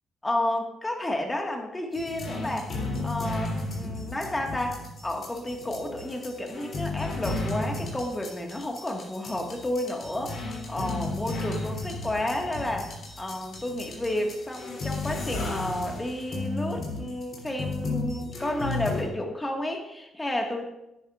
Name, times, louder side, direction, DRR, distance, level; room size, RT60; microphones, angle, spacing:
voice 1, 0.2-2.7 3.0-20.6, left 1 dB, 15° left, 2 dB, 1.6 m, -31 dB
sound 1, 1.9-19.1, left 2 dB, 55° left, 3.0 m, -34 dB
10.5 x 9.1 x 2.4 m, 0.90 s
cardioid pair, 90°, 0 cm